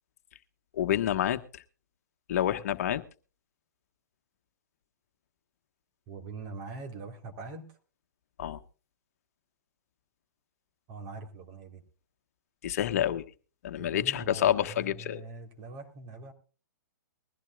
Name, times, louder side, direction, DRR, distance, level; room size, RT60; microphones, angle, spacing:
voice 1, 0.7-1.6 2.3-3.0 8.4-8.6 12.6-13.2 13.6-15.2, left 11 dB, 55° left, 9 dB, 1.3 m, -28 dB
voice 2, 6.1-7.6 10.9-11.8 13.8-16.3, right 3 dB, 35° right, 4 dB, 3.7 m, -43 dB
21.5 x 15.0 x 2.4 m, 0.36 s
figure-of-eight pair, 120°, 10 cm